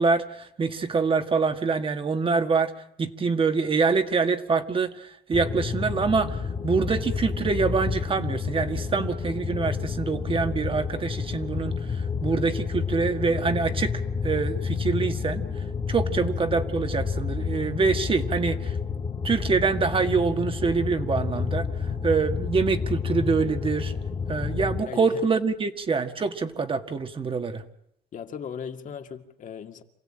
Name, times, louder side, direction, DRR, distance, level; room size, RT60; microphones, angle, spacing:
voice 1, 0.0-2.7 3.0-15.4 15.9-18.8 19.2-23.9 24.3-27.6, right 4 dB, 30° right, 1.8 m, -25 dB
sound 1, 5.3-24.8, left 5 dB, 25° left, 2.4 m, -30 dB
voice 2, 24.9-25.2 28.1-29.8, left 7 dB, 50° left, 2.3 m, -37 dB
27.5 x 16.5 x 8.8 m
cardioid pair, 110°, 17 cm